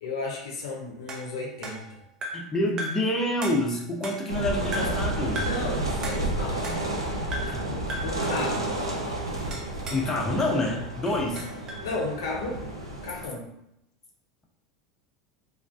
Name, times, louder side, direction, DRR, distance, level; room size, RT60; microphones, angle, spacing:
voice 1, 0.0-2.0 5.4-6.7 7.6-8.7 11.3-11.4 11.8-13.5, left 3 dB, 70° left, -1 dB, 0.5 m, -34 dB
sound 1, 1.1-2.5 2.8-3.1 3.4-4.4 4.7-5.1 5.3-5.7 6.0-7.0 7.3-7.6 7.9-8.2 9.5-10.1 10.4-11.9, equal, 35° right, 0.6 m, -37 dB
voice 2, 2.3-5.5 7.5-7.6 9.9-11.5, left 1 dB, 20° left, -1 dB, 0.5 m, -27 dB
sound 2, 4.3-13.3, right 1 dB, 90° right, 0.4 m, -31 dB
2.3 x 2.2 x 2.4 m, 0.82 s
figure-of-eight pair, 80°, 2 cm